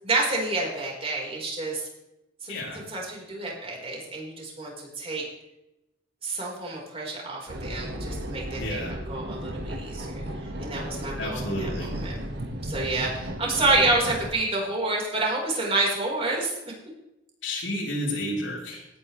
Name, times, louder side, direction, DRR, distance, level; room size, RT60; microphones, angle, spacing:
voice 1, 0.0-1.9 2.4-5.2 6.2-10.2 10.6-12.2 12.6-16.5, right 2 dB, 30° right, -2 dB, 4.5 m, -28 dB
voice 2, 2.5-2.8 8.6-8.9 11.2-11.9 17.4-18.9, left 1 dB, 85° left, -4 dB, 3.9 m, -31 dB
sound 1, 7.5-14.3, equal, 60° right, 1.6 m, -34 dB
18.0 x 9.6 x 3.3 m, 0.92 s
head